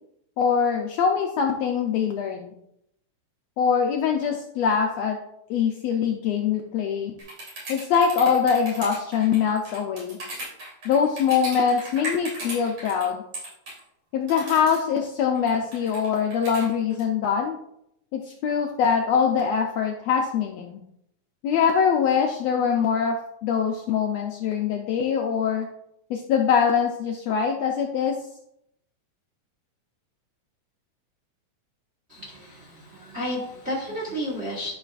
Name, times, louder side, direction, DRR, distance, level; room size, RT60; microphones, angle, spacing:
voice 1, 0.4-2.5 3.6-5.2 5.5-7.1 7.7-10.2 10.8-13.2 14.1-17.6 18.1-20.8 21.4-25.7 26.1-28.2, left 7 dB, 80° left, 2 dB, 1.6 m, -23 dB
sound 1, 7.2-13.0 13.3-13.8 14.3-14.8 15.4-17.0, right 1 dB, 50° right, 4.1 m, -36 dB
voice 2, 32.1-34.7, equal, 35° right, -4 dB, 1.1 m, -32 dB
12.0 x 5.9 x 2.4 m, 0.77 s
omnidirectional pair, 3.6 m